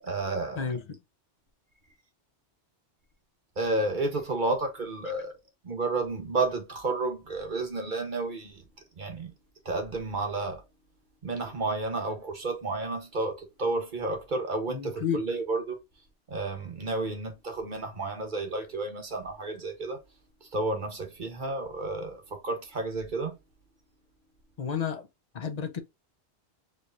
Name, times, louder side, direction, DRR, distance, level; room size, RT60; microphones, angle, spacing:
voice 1, 0.0-0.6 3.6-5.3 5.6-8.6 9.0-9.3 9.6-10.6 11.2-15.8 16.3-20.0 20.4-23.4, right 2 dB, 45° right, 1.2 m, -31 dB
voice 2, 0.6-1.0 14.7-15.2 24.6-25.1 25.3-25.8, left 7 dB, 45° left, 0.7 m, -31 dB
4.6 x 3.2 x 2.5 m
omnidirectional pair, 1.2 m